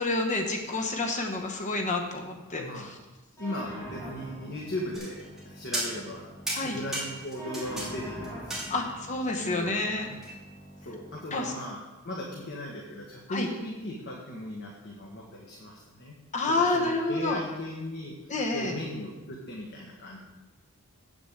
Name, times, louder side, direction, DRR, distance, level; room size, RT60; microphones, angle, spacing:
voice 1, 0.0-2.6 6.5-6.8 8.7-10.1 11.3-11.5 13.3-13.5 16.3-17.4 18.3-18.7, left 2 dB, 35° left, 2 dB, 1.0 m, -28 dB
voice 2, 2.6-2.9 3.4-5.2 5.4-6.3 6.6-8.7 9.4-10.2 10.8-16.2 16.5-20.2, left 1 dB, 50° left, -2 dB, 1.5 m, -37 dB
sound 1, 3.4-11.4, equal, 15° left, 2.8 m, -44 dB
sound 2, 4.9-5.4 5.7-6.2 6.5-7.9 8.2-9.1 10.2-10.4, right 1 dB, ahead, 2.9 m, -34 dB
7.9 x 6.3 x 8.1 m, 1.1 s
head